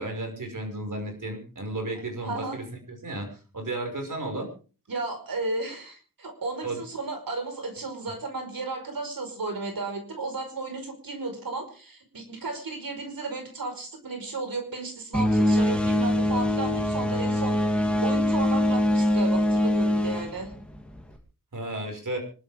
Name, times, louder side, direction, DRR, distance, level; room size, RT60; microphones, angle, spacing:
voice 1, 0.0-4.5 6.6-6.8 21.5-22.2, right 2 dB, 65° right, 4 dB, 6.1 m, -33 dB
voice 2, 2.2-2.6 4.9-20.5, right 3 dB, 85° right, 5 dB, 5.3 m, -34 dB
sound 1, 15.1-21.2, left 1 dB, 5° left, 3.1 m, -23 dB
25.5 x 13.0 x 3.7 m, 0.37 s
wide cardioid pair, 80°, 34 cm